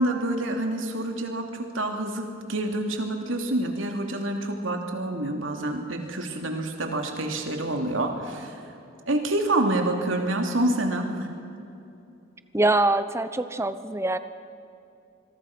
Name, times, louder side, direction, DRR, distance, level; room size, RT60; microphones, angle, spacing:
voice 1, 0.0-8.6 9.1-11.3, right 1 dB, 90° right, 3 dB, 2.9 m, -27 dB
voice 2, 12.5-14.2, right 2 dB, 15° right, 11 dB, 0.9 m, -24 dB
26.0 x 22.5 x 6.2 m, 2.7 s
head